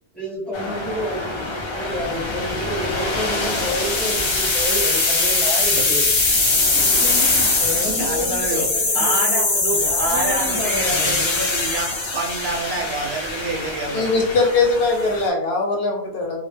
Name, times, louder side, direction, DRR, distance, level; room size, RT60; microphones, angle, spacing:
voice 1, 0.1-6.1 6.7-11.3, left 1 dB, ahead, -6 dB, 0.9 m, -30 dB
sound 1, 0.5-15.3, left 3 dB, 50° left, 0.3 m, -22 dB
voice 2, 7.7-8.7 8.9-14.3, right 3 dB, 70° right, 0 dB, 0.8 m, -27 dB
voice 3, 13.9-16.4, left 3 dB, 65° left, 1 dB, 0.7 m, -20 dB
2.3 x 2.0 x 3.2 m, 0.75 s
omnidirectional pair, 1.1 m